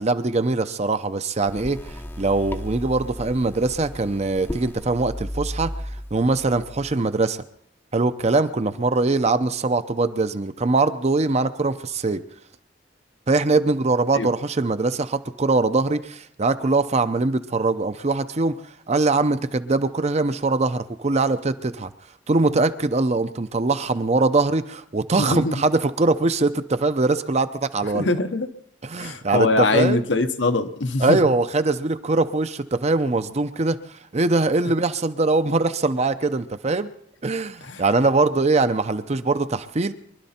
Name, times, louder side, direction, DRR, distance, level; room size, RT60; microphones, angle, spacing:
voice 1, 0.0-1.8 2.2-5.7 6.1-7.4 7.9-12.2 13.3-18.6 18.9-21.9 22.3-28.1 28.8-30.0 31.0-33.8 34.1-36.9 37.2-39.9, right 3 dB, 35° right, 11 dB, 0.7 m, -22 dB
sound 1, 1.5-7.0, equal, 10° left, 0.7 m, -35 dB
voice 2, 25.2-25.6 27.8-28.5 29.0-31.2 37.6-37.8, left 3 dB, 75° left, 8 dB, 1.0 m, -23 dB
24.0 x 12.0 x 4.3 m, 0.73 s
head